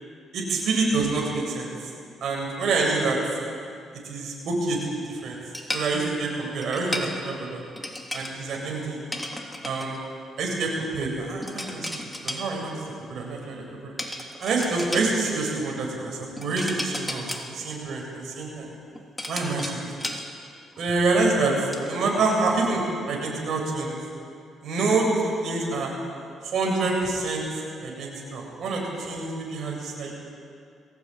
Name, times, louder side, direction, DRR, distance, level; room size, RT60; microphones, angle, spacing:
voice 1, 0.3-1.7 2.2-3.2 4.0-4.8 5.1-5.4 5.7-7.6 8.1-9.0 9.6-10.0 10.4-12.7 13.1-13.9 14.4-18.7 19.3-20.1 20.8-22.8 23.1-24.0 24.6-25.9 26.4-27.5 27.8-30.1, right 3 dB, 65° right, -1 dB, 7.9 m, -27 dB
sound 1, 5.5-5.9 6.6-7.1 7.8-8.3 9.1-10.0 11.4-12.4 14.0-15.1 16.4-17.5 18.7-20.3 20.8-20.9 21.3-21.9, left 1 dB, 10° left, 3.1 m, -33 dB
22.5 x 17.5 x 9.5 m, 2.4 s
cardioid pair, 90°, 0 cm